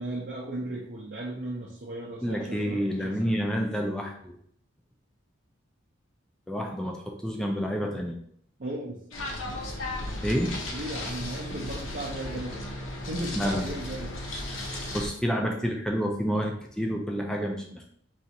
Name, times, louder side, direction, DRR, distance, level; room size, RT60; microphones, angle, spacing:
voice 1, 0.0-3.4 8.6-9.0 10.7-12.6 13.1-14.1, right 1 dB, 45° right, -4 dB, 0.6 m, -36 dB
voice 2, 2.2-4.4 6.5-8.2 10.2-10.6 13.4-13.6 14.9-17.9, equal, 5° left, 1 dB, 0.4 m, -29 dB
sound 1, 9.1-15.1, left 1 dB, 70° left, 0.7 m, -35 dB
4.1 x 2.4 x 2.8 m, 0.66 s
head